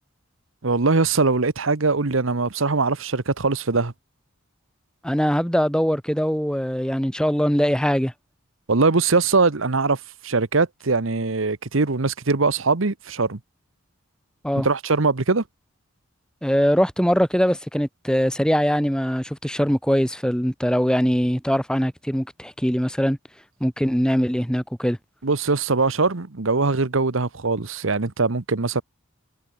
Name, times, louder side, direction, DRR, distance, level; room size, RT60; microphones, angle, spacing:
voice 1, 0.6-3.9 8.7-10.0 10.2-13.4 14.6-15.4 25.2-28.8, right 3 dB, 70° right, 1.1 m, -21 dB
voice 2, 5.0-8.1 14.4-14.7 16.4-23.2 23.6-25.0, equal, 5° left, 3.9 m, -22 dB
head